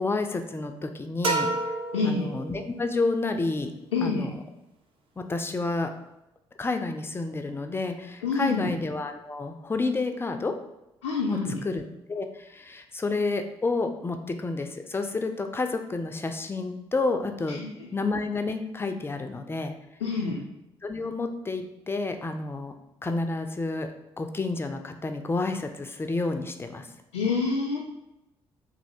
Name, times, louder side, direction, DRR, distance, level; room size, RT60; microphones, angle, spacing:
voice 1, 0.0-1.5 2.0-3.7 4.0-4.4 5.2-5.9 6.6-10.5 11.3-17.6 17.9-19.7 20.8-22.7 23.0-26.9, left 3 dB, 15° left, 6 dB, 0.4 m, -30 dB
sound 1, 1.2-3.0, right 3 dB, 40° right, 0.6 m, -30 dB
voice 2, 1.9-2.3 3.9-4.3 8.2-8.7 11.0-11.6 17.6-17.7 20.0-20.4 27.1-27.8, left 4 dB, 80° left, -4 dB, 0.4 m, -26 dB
3.2 x 2.5 x 2.7 m, 0.91 s
figure-of-eight pair, 45°, 14 cm